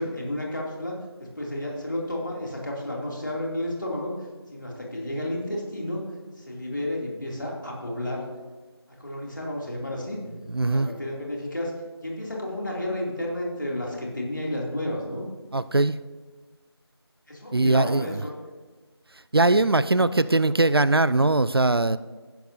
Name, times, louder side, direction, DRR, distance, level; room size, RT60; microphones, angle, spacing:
voice 1, 0.0-4.1 4.5-6.0 6.4-8.3 9.0-10.2 10.6-11.7 12.0-15.2 17.3-18.4 19.5-20.2, left 1 dB, 45° left, -2 dB, 2.6 m, -32 dB
voice 2, 10.5-10.9 15.5-16.0 17.5-18.2 19.3-22.0, right 2 dB, 60° right, 16 dB, 0.4 m, -21 dB
15.0 x 10.5 x 2.7 m, 1.3 s
figure-of-eight pair, 175°, 14 cm